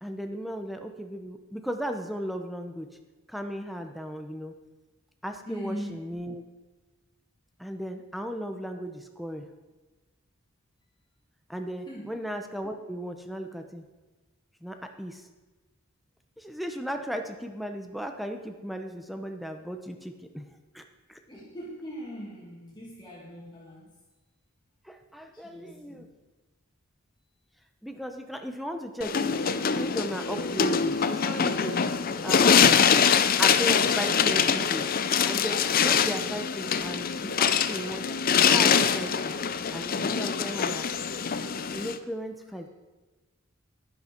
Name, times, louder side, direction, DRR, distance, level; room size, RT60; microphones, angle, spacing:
voice 1, 0.0-2.9 3.3-4.5 5.2-6.4 7.6-9.5 11.5-13.8 14.6-15.2 16.4-20.5 20.7-20.8 21.1-21.2 24.8-26.1 27.8-31.8 32.2-32.8 33.4-34.9 35.3-38.2 38.5-39.4 39.7-40.9 41.7-42.7, equal, ahead, 5 dB, 0.8 m, -36 dB
voice 2, 5.5-6.2 11.9-12.2 21.3-23.9 25.3-26.1 36.6-36.9 37.2-37.4, equal, 20° left, -5 dB, 2.1 m, -41 dB
sound 1, 29.0-42.0, left 7 dB, 45° left, 0.5 m, -24 dB
11.0 x 11.0 x 4.5 m, 1.2 s
head